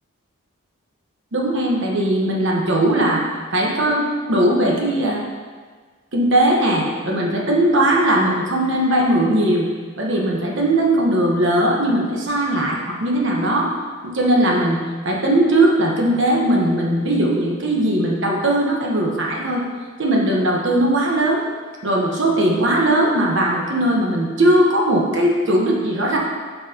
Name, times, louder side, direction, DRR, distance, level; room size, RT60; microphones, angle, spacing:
voice 1, 1.3-3.3 3.5-5.2 6.1-9.7 10.0-13.7 14.0-19.6 20.0-21.4 21.8-26.2, right 1 dB, 60° right, -2 dB, 1.1 m, -19 dB
8.7 x 4.7 x 2.8 m, 1.5 s
head